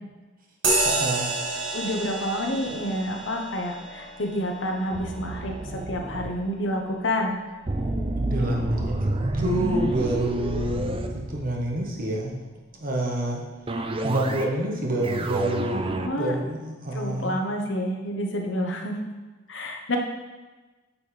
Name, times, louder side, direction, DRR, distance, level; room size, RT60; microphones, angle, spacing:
sound 1, 0.6-8.5, right 2 dB, 85° right, 1.5 m, -31 dB
voice 1, 0.8-1.4 8.1-12.4 12.7-13.4 14.0-15.9 16.1-17.4, right 1 dB, 45° right, -1 dB, 1.3 m, -27 dB
voice 2, 1.7-7.3 16.0-16.4 16.9-18.9 19.5-20.0, left 1 dB, 70° left, 2 dB, 1.1 m, -29 dB
sound 2, 4.9-6.3 7.7-11.9 13.7-14.6 14.9-16.1, right 2 dB, 30° right, 0.4 m, -29 dB
9.4 x 5.6 x 3.4 m, 1.2 s
head